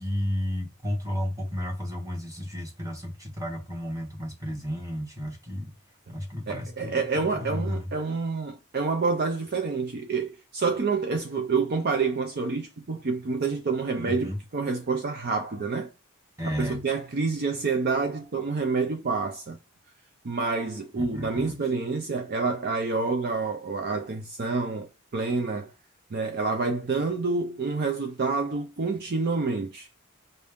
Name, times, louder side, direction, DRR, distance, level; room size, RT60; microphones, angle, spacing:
voice 1, 0.0-5.7 6.1-7.9 14.0-14.4 16.4-16.9 20.9-21.6, equal, 15° right, 1.1 m, -32 dB
voice 2, 6.5-15.9 16.4-19.6 20.2-25.7 26.1-29.9, right 4 dB, 45° right, 0.5 m, -28 dB
5.3 x 2.7 x 3.5 m
head